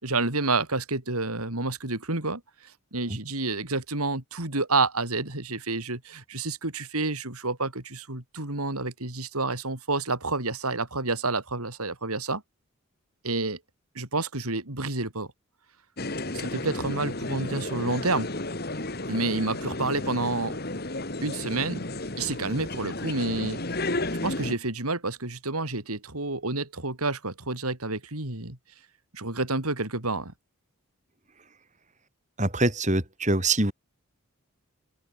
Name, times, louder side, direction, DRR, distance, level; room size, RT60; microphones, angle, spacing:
voice 1, 0.0-12.4 13.2-13.6 13.9-15.3 16.3-18.3 19.1-20.6 21.2-21.8 22.2-23.6 24.2-28.6 29.1-30.3, right 3 dB, 85° right, 4.3 m, -29 dB
sound 1, 16.0-24.6, left 2 dB, 45° left, 2.3 m, -33 dB
voice 2, 32.4-33.7, right 2 dB, 30° right, 3.8 m, -24 dB
head